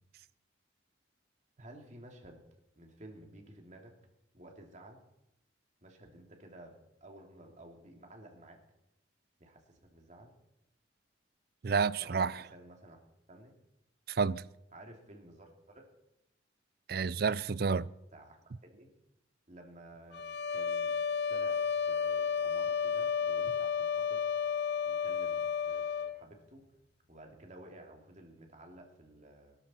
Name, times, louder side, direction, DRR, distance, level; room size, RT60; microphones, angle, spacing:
voice 1, 1.6-2.4 2.7-4.0 4.3-5.0 5.8-8.6 9.4-10.3 12.0-13.0 13.3-13.5 14.7-15.9 18.1-18.4 18.6-18.9 19.5-20.2 20.5-20.9 21.3-24.2 24.8-26.6 27.1-29.6, right 1 dB, 40° right, 2.8 m, -53 dB
voice 2, 11.6-12.3 14.1-14.4 16.9-17.9, right 5 dB, 55° right, 0.5 m, -29 dB
sound 1, 20.1-26.2, left 6 dB, 60° left, 0.7 m, -32 dB
22.5 x 13.5 x 4.4 m
head